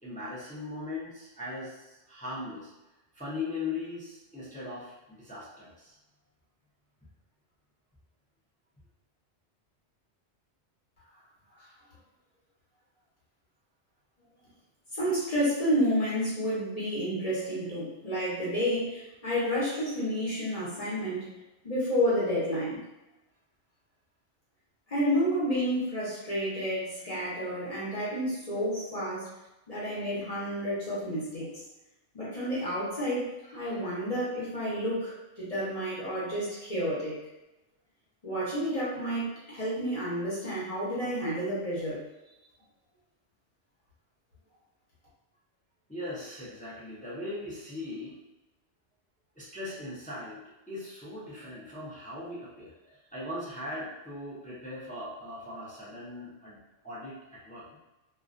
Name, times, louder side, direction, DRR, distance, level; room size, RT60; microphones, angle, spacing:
voice 1, 0.0-2.7 3.1-5.9 45.9-48.2 49.4-56.6 56.8-57.6, left 2 dB, 15° left, -8 dB, 0.3 m, -39 dB
voice 2, 14.9-21.3 21.6-22.8 24.9-29.3 29.7-31.5 32.1-37.2 38.2-42.1, equal, 40° left, -9 dB, 0.8 m, -30 dB
2.3 x 2.1 x 2.4 m, 0.98 s
omnidirectional pair, 1.1 m